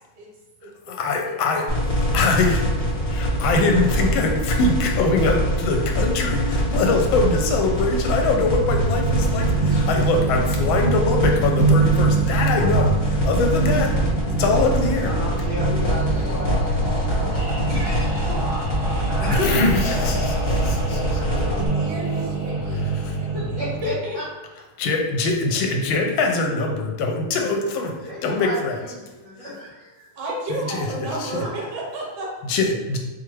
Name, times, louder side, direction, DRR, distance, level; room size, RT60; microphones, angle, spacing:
voice 1, 1.0-1.6 2.1-2.6 3.1-12.9 13.2-13.9 14.3-15.1 19.3-20.1 20.9-21.2 22.9-23.4 24.8-28.8 30.5-30.9 31.2-31.3 32.4-33.0, left 3 dB, 85° left, 2 dB, 1.4 m, -22 dB
sound 1, 1.7-21.7, equal, 50° left, 0.7 m, -24 dB
sound 2, 8.0-23.9, right 3 dB, 25° right, 1.2 m, -25 dB
voice 2, 9.4-9.8 11.4-11.7 12.6-12.9 15.0-18.4 19.2-19.5 21.1-22.1 23.3-24.2 28.0-30.1 31.4-31.5, left 1 dB, 60° right, -12 dB, 2.0 m, -33 dB
voice 3, 21.8-22.8 23.6-24.2 30.1-32.3, right 1 dB, 80° right, -2 dB, 1.8 m, -31 dB
4.4 x 2.4 x 3.1 m, 1.1 s
omnidirectional pair, 2.2 m